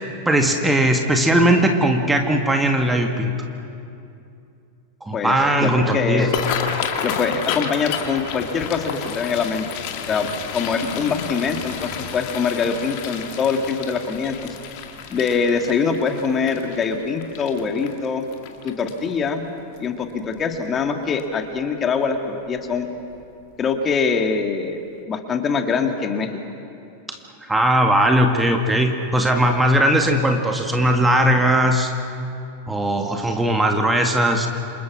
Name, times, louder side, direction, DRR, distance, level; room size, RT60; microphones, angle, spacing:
voice 1, 0.3-3.3 5.0-6.3 27.1-27.2 27.5-31.9 32.7-34.5, right 1 dB, 10° right, 3 dB, 2.0 m, -18 dB
voice 2, 5.6-6.3 7.0-9.7 10.1-10.3 10.5-14.6 15.1-18.3 18.6-19.5 19.8-22.9 23.6-24.8 25.1-26.4 33.0-33.1, left 5 dB, 25° left, 5 dB, 2.3 m, -23 dB
sound 1, 6.2-19.3 19.8-20.0 20.4-20.8 21.2-21.3 22.6-22.8 23.1-23.2 23.7-23.8, left 7 dB, 45° left, 2.4 m, -31 dB
29.0 x 27.0 x 6.2 m, 2.6 s
figure-of-eight pair, 90°, 0 cm